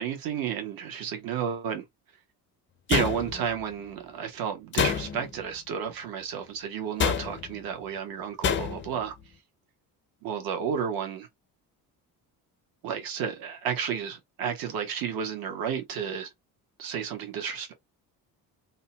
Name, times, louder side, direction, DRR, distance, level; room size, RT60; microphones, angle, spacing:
voice 1, 0.0-1.8 2.9-9.1 10.2-11.3 12.8-16.3 16.8-17.7, right 7 dB, 65° right, 1.0 m, -32 dB
sound 1, 2.9-3.6 4.7-5.4 7.0-7.6 8.4-9.0, left 7 dB, 30° left, 0.4 m, -27 dB
2.7 x 2.1 x 2.7 m
cardioid pair, 110°, 38 cm